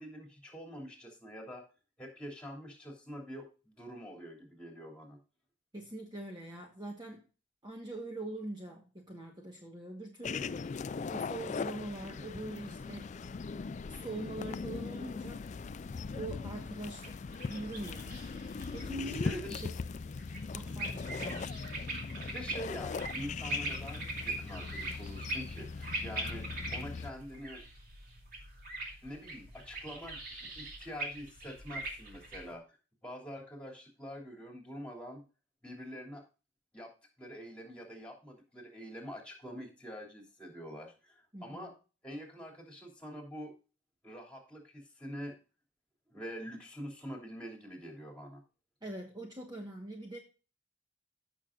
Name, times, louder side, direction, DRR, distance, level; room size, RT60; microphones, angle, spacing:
voice 1, 0.0-1.6 2.0-5.2 16.2-16.6 19.2-19.6 20.6-20.8 22.3-27.6 29.0-32.8 33.0-35.2 35.6-36.2 36.7-36.9 37.2-41.7 42.0-43.5 44.0-45.3 46.1-48.4, equal, 5° left, 1 dB, 3.0 m, -45 dB
voice 2, 5.7-7.2 7.6-10.6 11.0-13.1 13.9-15.8 16.1-17.2 17.5-18.2 18.7-19.7 20.5-21.6 41.3-41.7 48.8-50.2, right 1 dB, 20° right, 1 dB, 1.3 m, -43 dB
sound 1, 10.2-27.1, left 4 dB, 40° left, 0.3 m, -40 dB
sound 2, 16.6-32.5, right 2 dB, 50° right, 2.7 m, -42 dB
15.5 x 6.2 x 2.5 m, 0.33 s
head